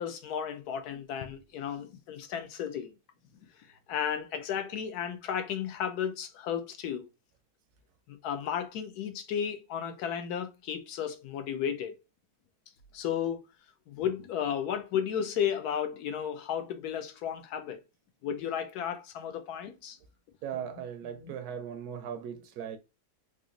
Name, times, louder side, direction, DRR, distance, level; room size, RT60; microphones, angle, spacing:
voice 1, 0.0-2.9 3.9-7.1 8.1-12.0 12.9-13.4 13.9-17.8 18.2-20.0 20.5-21.4, left 8 dB, 85° left, 1.1 m, -34 dB
voice 2, 20.4-22.8, right 8 dB, 80° right, 1.1 m, -38 dB
3.9 x 2.5 x 2.4 m
omnidirectional pair, 1.6 m